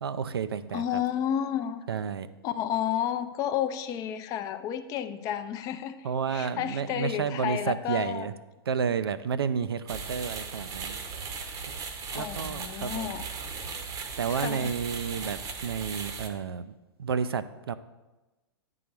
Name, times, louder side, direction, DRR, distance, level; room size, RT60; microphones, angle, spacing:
voice 1, 0.0-1.0 1.9-2.3 6.0-8.3 8.7-11.0 12.1-13.2 14.2-16.7 17.0-17.7, right 6 dB, 70° right, 13 dB, 0.4 m, -31 dB
voice 2, 0.7-1.8 2.4-8.3 12.1-13.3 14.3-14.7, left 10 dB, 25° left, 10 dB, 0.4 m, -31 dB
sound 1, 9.9-16.3, right 5 dB, 25° right, 0.8 m, -37 dB
10.0 x 3.9 x 4.6 m, 1.1 s
figure-of-eight pair, 105°, 13 cm